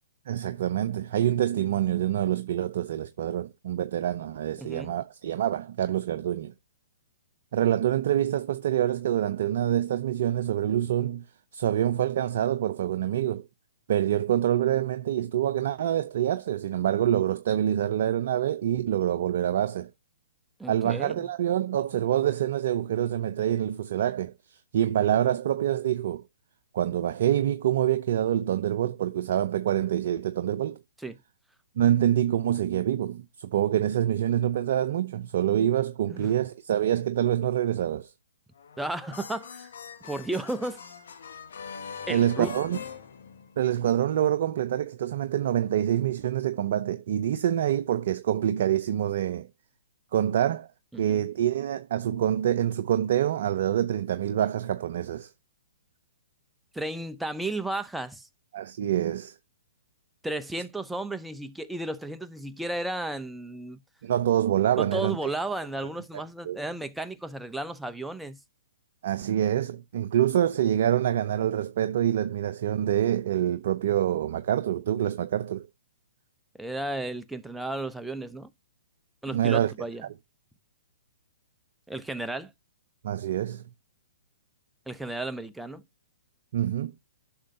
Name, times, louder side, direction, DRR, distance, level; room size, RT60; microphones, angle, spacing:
voice 1, 0.3-6.5 7.5-11.2 11.5-13.5 13.9-19.9 20.7-26.2 26.7-30.8 31.8-38.1 42.1-42.8 43.6-49.5 50.1-50.7 51.0-55.3 58.5-59.3 64.0-65.2 66.4-66.6 69.0-75.7 79.3-79.7 83.0-83.6 86.5-86.9, right 11 dB, 55° right, 0.6 m, -26 dB
voice 2, 4.6-5.0 20.6-21.1 31.0-31.2 36.1-36.3 38.8-39.7 40.0-40.8 42.1-42.5 50.9-51.2 56.7-58.3 60.2-63.8 64.8-68.4 76.6-78.5 79.2-80.1 81.9-82.5 84.9-85.8, right 2 dB, 5° right, 0.7 m, -33 dB
sound 1, 38.6-43.9, left 6 dB, 70° left, 1.6 m, -42 dB
11.5 x 6.3 x 2.8 m
hypercardioid pair, 125°, 0 cm